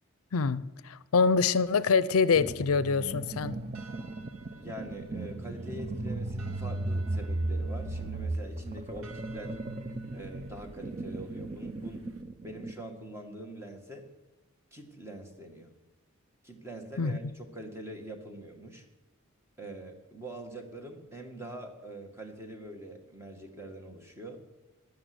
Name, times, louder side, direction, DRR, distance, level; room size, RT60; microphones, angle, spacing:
voice 1, 0.3-3.6 17.0-17.1, left 5 dB, 75° left, 17 dB, 0.5 m, -25 dB
sound 1, 2.3-12.2, right 1 dB, 70° right, 1.4 m, -52 dB
sound 2, 2.4-12.8, right 2 dB, 30° right, 0.5 m, -36 dB
voice 2, 4.5-9.6 10.1-12.1 12.4-14.1 14.7-15.7 16.4-18.9 19.6-24.4, right 1 dB, 10° right, 3 dB, 1.7 m, -44 dB
12.5 x 10.5 x 7.9 m, 1.0 s
head